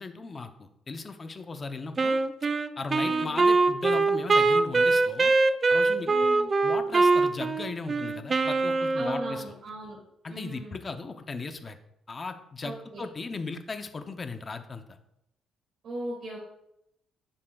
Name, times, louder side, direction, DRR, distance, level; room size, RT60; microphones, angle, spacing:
voice 1, 0.0-2.2 2.8-5.3 5.7-6.3 6.6-9.4 10.2-11.8 12.1-15.0, left 4 dB, 20° left, 8 dB, 0.6 m, -37 dB
Wind instrument woodwind instrument, 2.0-9.5, right 3 dB, 25° right, 0.3 m, -23 dB
voice 2, 3.0-3.4 6.1-6.5 8.9-10.0 10.3-10.8 12.6-13.0 15.8-16.4, right 2 dB, 50° right, -6 dB, 2.4 m, -38 dB
10.0 x 7.6 x 2.3 m, 0.81 s
cardioid pair, 175°, 0 cm